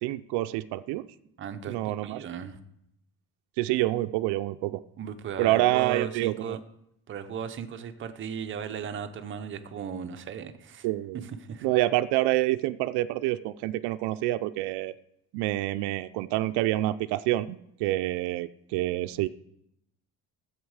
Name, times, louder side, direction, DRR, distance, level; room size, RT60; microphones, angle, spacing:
voice 1, 0.0-1.0 1.7-2.2 3.6-4.8 5.4-6.6 10.8-11.2 11.6-14.9 15.3-19.3, right 16 dB, 80° right, 11 dB, 0.5 m, -27 dB
voice 2, 1.4-2.6 5.0-6.6 7.1-10.9 11.1-11.7, right 7 dB, 30° right, 9 dB, 0.6 m, -36 dB
13.0 x 8.1 x 4.8 m, 0.79 s
cardioid pair, 175°, 40 cm